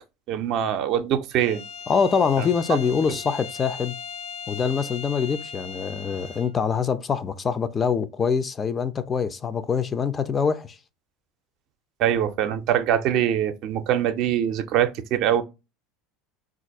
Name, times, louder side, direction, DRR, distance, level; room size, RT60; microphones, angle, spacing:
voice 1, 0.3-1.6 2.4-2.5 12.0-15.4, right 10 dB, 55° right, 0.4 m, -23 dB
Bowed string instrument, 1.3-6.6, left 6 dB, 70° left, 0.8 m, -38 dB
voice 2, 1.9-3.9 4.5-10.8, left 6 dB, 30° left, 0.4 m, -24 dB
3.8 x 2.4 x 2.6 m
hypercardioid pair, 75°, 0 cm